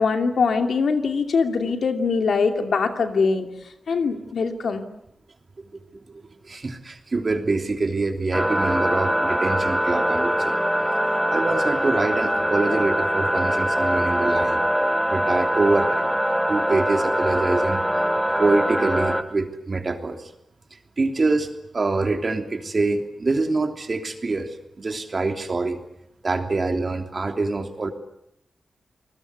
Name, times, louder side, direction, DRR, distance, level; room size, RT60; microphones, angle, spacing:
voice 1, 0.0-3.5 3.9-4.9, left 4 dB, 75° left, 6 dB, 2.6 m, -22 dB
voice 2, 5.9-10.6 11.3-14.6 15.1-16.1 16.5-17.8 18.4-20.3 21.0-21.5 21.7-25.8 26.2-27.9, right 3 dB, 45° right, 5 dB, 3.2 m, -25 dB
sound 1, 8.3-19.2, equal, ahead, 2.3 m, -23 dB
29.0 x 20.0 x 8.3 m, 0.78 s
cardioid pair, 50°, 0 cm